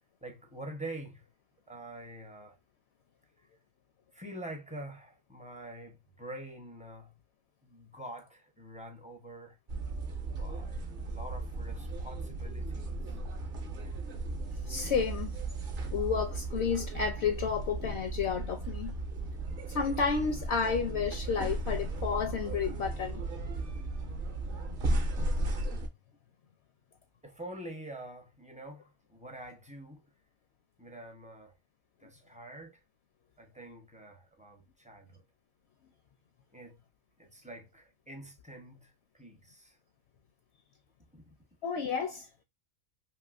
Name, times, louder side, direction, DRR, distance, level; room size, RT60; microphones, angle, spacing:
voice 1, 0.2-1.2 1.7-2.6 4.1-7.2 7.6-9.6 10.2-13.2 27.2-30.0 30.8-31.6 32.0-32.8 33.4-35.2 36.5-36.8 37.2-39.8 41.1-41.3, right 1 dB, 10° right, 0.4 m, -46 dB
sound 1, 9.7-25.9, right 2 dB, 50° right, 0.7 m, -35 dB
voice 2, 14.7-15.3 15.8-18.9 19.7-23.2 41.6-42.3, left 6 dB, 65° left, 0.7 m, -31 dB
3.0 x 2.9 x 2.3 m
omnidirectional pair, 1.4 m